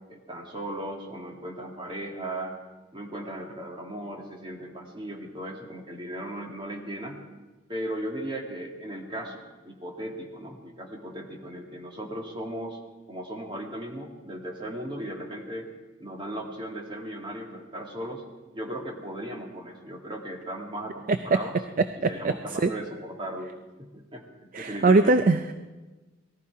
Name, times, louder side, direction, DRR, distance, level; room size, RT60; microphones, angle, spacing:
voice 1, 0.1-2.6 2.9-7.2 7.7-12.8 13.1-15.7 16.0-18.2 18.5-21.5 22.1-23.5 23.8-24.3 24.6-25.2, right 1 dB, 25° right, 0 dB, 2.1 m, -37 dB
voice 2, 21.1-21.4 21.8-22.7 24.5-25.5, right 3 dB, 40° right, 10 dB, 0.4 m, -22 dB
19.0 x 14.0 x 4.7 m, 1.2 s
head